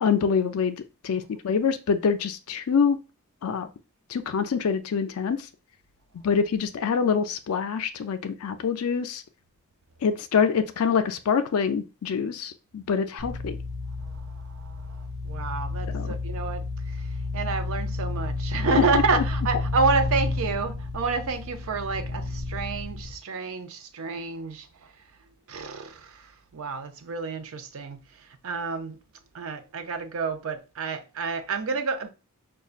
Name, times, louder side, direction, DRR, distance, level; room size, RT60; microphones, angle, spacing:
voice 1, 0.0-3.0 3.4-3.7 4.1-5.4 6.2-9.2 10.0-13.5 15.9-16.1 18.9-19.2, left 6 dB, 75° left, 0.4 m, -25 dB
sound 1, 13.2-23.1, left 2 dB, 35° right, 1.6 m, -31 dB
voice 2, 14.5-15.0 15.2-16.6 17.3-24.7 25.5-26.2 26.5-28.0 28.4-29.0 29.3-32.1, right 4 dB, 65° right, 0.5 m, -29 dB
5.2 x 2.3 x 2.4 m
head